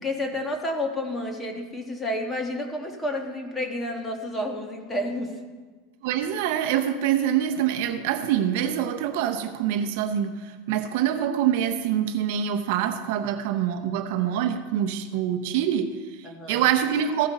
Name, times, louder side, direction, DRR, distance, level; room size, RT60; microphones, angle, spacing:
voice 1, 0.0-5.4 16.2-16.7, left 1 dB, 15° left, 3 dB, 1.3 m, -30 dB
voice 2, 6.0-17.3, right 10 dB, 65° right, 8 dB, 0.7 m, -25 dB
15.0 x 5.1 x 4.1 m, 1.4 s
supercardioid pair, 135°, 0 cm